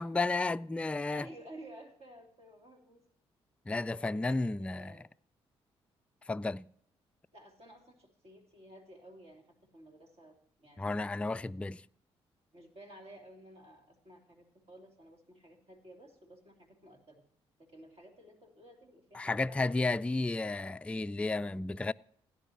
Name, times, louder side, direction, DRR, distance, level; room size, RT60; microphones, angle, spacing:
voice 1, 0.0-1.3 3.7-5.0 6.3-6.6 10.8-11.8 19.1-21.9, left 3 dB, 10° left, 0.3 m, -32 dB
voice 2, 1.1-3.0 3.7-5.1 7.3-9.5 9.7-10.3 10.6-11.0 11.3-11.5 12.5-17.2 17.7-20.1, right 1 dB, 50° right, 3.1 m, -54 dB
17.5 x 9.9 x 2.9 m
hypercardioid pair, 45°, 13 cm